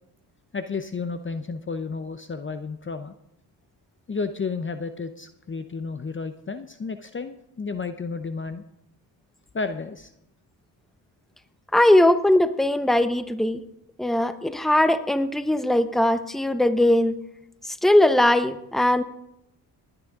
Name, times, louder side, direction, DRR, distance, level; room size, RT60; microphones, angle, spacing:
voice 1, 0.5-3.1 4.1-8.6 9.5-10.1, left 4 dB, 25° left, 10 dB, 0.8 m, -32 dB
voice 2, 11.7-13.6 14.0-17.1 17.7-19.0, left 1 dB, ahead, 11 dB, 1.0 m, -20 dB
20.0 x 9.9 x 3.7 m, 0.80 s
supercardioid pair, 60°, 44 cm